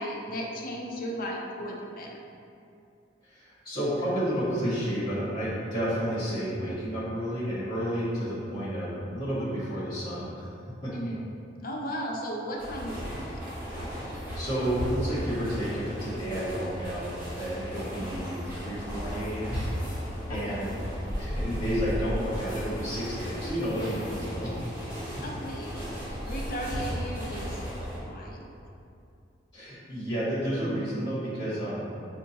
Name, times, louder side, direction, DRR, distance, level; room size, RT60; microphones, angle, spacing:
voice 1, 0.0-2.2 10.9-11.3 11.6-13.5 17.9-18.2 20.3-20.7 25.2-25.9 26.2-27.6 28.0-28.5, equal, 50° left, -1 dB, 0.6 m, -36 dB
voice 2, 3.2-10.5 10.8-10.9 14.0-19.6 20.3-20.7 21.1-24.6 25.2-25.3 29.5-31.9, equal, 25° left, -11 dB, 1.4 m, -31 dB
sound 1, 12.6-28.0, equal, 10° right, 1.5 m, -35 dB
6.1 x 2.5 x 2.8 m, 2.5 s
head